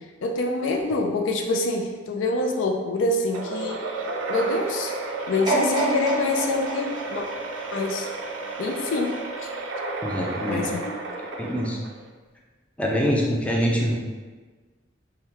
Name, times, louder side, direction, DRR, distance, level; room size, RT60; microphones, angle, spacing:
voice 1, 0.2-3.8 4.3-4.9 5.3-7.3 7.7-8.1 8.6-9.5 10.5-11.0, left 2 dB, 75° left, 3 dB, 0.4 m, -26 dB
sound 1, 3.3-12.1, right 3 dB, 80° right, 0.4 m, -32 dB
sound 2, 5.5-8.5 9.1-9.2, right 2 dB, 25° right, 0.7 m, -28 dB
voice 2, 10.0-10.6 11.2-11.8 12.8-14.0, equal, 5° left, -3 dB, 0.4 m, -24 dB
3.5 x 2.2 x 2.9 m, 1.3 s
head